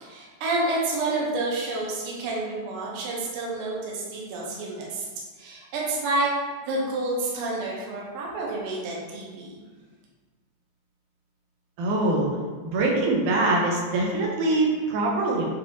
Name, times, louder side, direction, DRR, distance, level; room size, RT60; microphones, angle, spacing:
voice 1, 0.0-5.1 5.4-6.3 6.6-9.6, right 2 dB, 65° right, -4 dB, 1.4 m, -29 dB
voice 2, 11.8-12.3 12.7-15.5, right 2 dB, 90° right, -1 dB, 2.2 m, -23 dB
6.5 x 2.7 x 2.8 m, 1.5 s
omnidirectional pair, 3.4 m